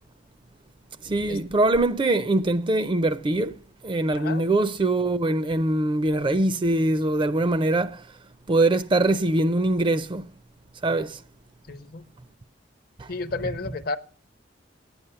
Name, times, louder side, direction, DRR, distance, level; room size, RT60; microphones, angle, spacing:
voice 1, 1.0-3.6 3.8-8.0 8.5-10.3 10.8-11.2 13.0-13.1, right 2 dB, 25° right, 0.4 m, -23 dB
voice 2, 4.2-4.5 11.7-12.1 13.1-14.0, left 3 dB, 50° left, 0.6 m, -32 dB
9.4 x 8.8 x 6.7 m
head